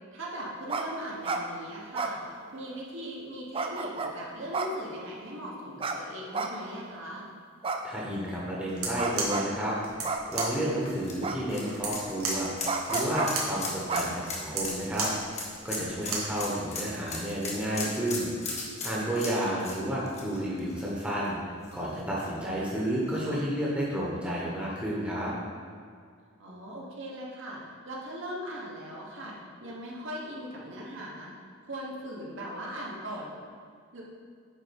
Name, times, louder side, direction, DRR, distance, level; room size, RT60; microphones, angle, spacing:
voice 1, 0.1-7.3 16.1-16.4 26.4-27.6 27.8-29.4 29.6-31.3 31.6-33.3 33.9-34.0, equal, 60° right, -3 dB, 1.4 m, -39 dB
sound 1, 0.7-0.9 1.1-1.4 1.9-2.7 3.5-4.1 4.5-5.2 5.8-6.0 6.3-6.9 7.6-8.3 9.0-9.5 10.0-10.6 11.2-11.8 12.6-13.3 13.9-14.6, right 4 dB, 25° right, 0.4 m, -32 dB
voice 2, 7.8-9.8 10.3-12.5 12.9-15.1 15.6-18.3 18.8-21.4 21.7-25.3, right 1 dB, 5° right, -6 dB, 1.2 m, -31 dB
sound 2, 8.7-16.4, right 3 dB, 90° right, 1.5 m, -35 dB
sound 3, 10.5-21.3 21.6-21.7 23.2-23.3, left 3 dB, 30° left, 1.2 m, -37 dB
9.1 x 3.7 x 5.3 m, 2.1 s
head